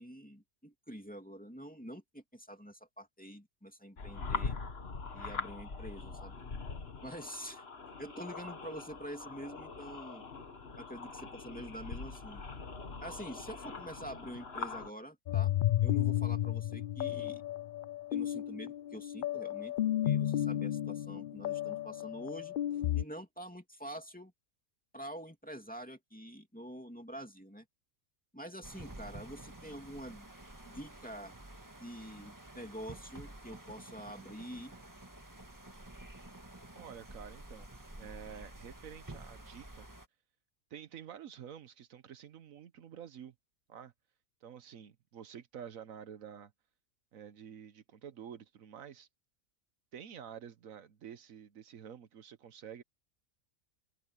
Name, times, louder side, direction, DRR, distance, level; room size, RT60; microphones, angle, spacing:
voice 1, 0.0-4.6 5.1-6.4 7.0-7.6 8.0-10.2 10.8-12.4 13.0-15.5 15.8-17.4 18.1-19.8 20.0-22.5 22.9-24.3 24.9-27.6 28.3-30.3 30.6-31.3 31.8-34.7, equal, 5° left, 2.6 m, -46 dB
sound 1, 4.0-14.9, left 4 dB, 50° left, 1.9 m, -42 dB
sound 2, 15.3-23.0, left 12 dB, 70° left, 0.5 m, -33 dB
sound 3, 28.6-40.1, right 1 dB, 15° right, 1.6 m, -50 dB
voice 2, 36.7-37.7 38.0-39.9 40.7-43.3 43.7-43.9 44.4-46.5 47.1-49.1 49.9-52.8, right 8 dB, 80° right, 1.3 m, -49 dB
open air
omnidirectional pair, 1.4 m